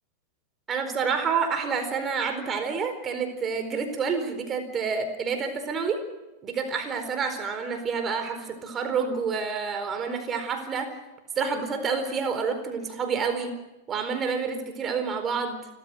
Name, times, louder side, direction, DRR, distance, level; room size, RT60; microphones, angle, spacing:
voice 1, 0.7-6.0 6.4-11.0 11.4-13.6 13.9-15.7, right 5 dB, 25° right, 7 dB, 4.4 m, -28 dB
29.0 x 13.5 x 8.0 m, 1.0 s
figure-of-eight pair, 90°, 0 cm